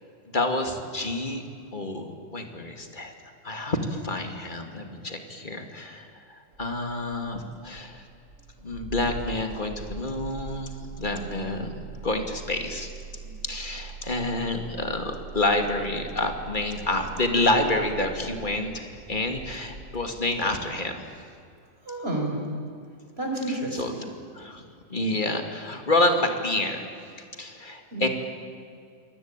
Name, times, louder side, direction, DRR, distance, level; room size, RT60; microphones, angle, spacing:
voice 1, 0.3-1.4 1.7-3.1 3.4-8.0 8.6-12.9 13.4-21.0 23.7-23.9 24.3-24.6 24.9-26.9 27.4-28.1, left 2 dB, 30° left, 5 dB, 2.7 m, -28 dB
Engine starting, 6.5-20.7, right 4 dB, 55° right, 3.2 m, -42 dB
voice 2, 21.9-22.4 23.2-24.0 27.9-28.1, right 1 dB, 40° right, 1 dB, 5.6 m, -30 dB
27.0 x 22.5 x 9.0 m, 2.4 s
omnidirectional pair, 1.6 m